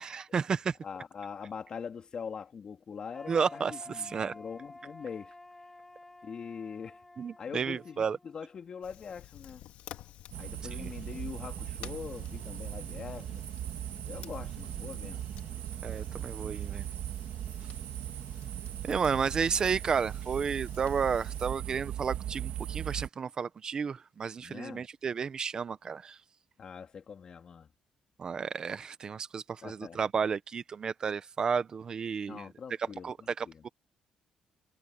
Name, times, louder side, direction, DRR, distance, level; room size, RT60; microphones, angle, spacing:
voice 1, 0.0-0.7 3.3-4.3 7.2-8.2 10.8-10.9 15.8-16.9 18.8-26.2 28.2-32.4 33.0-33.7, right 6 dB, 35° right, 0.9 m, -32 dB
voice 2, 0.8-5.3 6.2-7.0 7.4-9.6 10.3-13.4 14.0-15.2 24.4-24.8 26.6-27.7 29.6-30.0 32.3-33.6, left 6 dB, 40° left, 2.9 m, -43 dB
sound 1, 3.1-9.0, left 2 dB, 10° left, 4.2 m, -51 dB
Fire, 8.8-21.5, left 12 dB, 85° left, 2.5 m, -53 dB
sound 2, 10.3-23.1, right 11 dB, 70° right, 1.7 m, -38 dB
cardioid pair, 135°, 2 cm